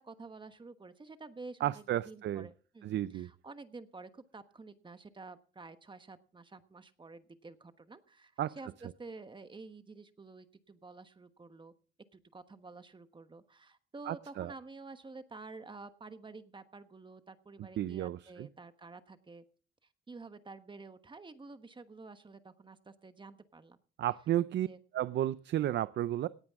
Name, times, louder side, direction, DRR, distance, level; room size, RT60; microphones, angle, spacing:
voice 1, 0.0-11.7 12.1-19.4 20.1-23.8 24.6-24.8, right 3 dB, 25° right, 10 dB, 1.2 m, -50 dB
voice 2, 1.6-2.5 2.8-3.3 8.4-8.6 14.1-14.5 17.8-18.5 24.0-24.7 24.9-26.3, right 12 dB, 65° right, 16 dB, 0.5 m, -33 dB
18.0 x 9.6 x 3.6 m, 0.40 s
cardioid pair, 90°, 20 cm